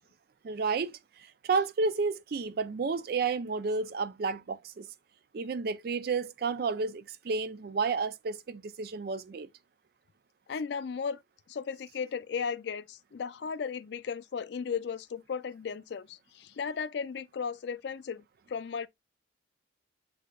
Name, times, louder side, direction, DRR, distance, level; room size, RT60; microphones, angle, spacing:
voice 1, 0.4-1.0 1.4-4.9 5.3-9.5, right 4 dB, 50° right, 0.4 m, -31 dB
voice 2, 10.5-11.2 11.5-18.9, left 6 dB, 60° left, 0.3 m, -35 dB
8.2 x 2.8 x 2.2 m
head